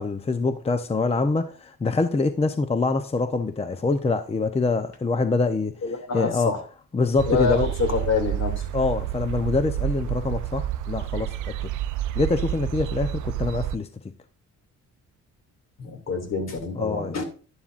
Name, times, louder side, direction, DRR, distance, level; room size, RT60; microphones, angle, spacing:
voice 1, 0.0-6.6 6.9-7.7 8.7-11.7 12.1-13.9 16.7-17.2, left 3 dB, 20° left, 0.7 m, -25 dB
voice 2, 5.8-6.6 7.3-8.6 15.8-17.2, left 4 dB, 60° left, 2.7 m, -26 dB
sound 1, 7.2-13.8, right 12 dB, 75° right, 0.6 m, -29 dB
11.5 x 11.0 x 2.5 m
cardioid pair, 90°, 30 cm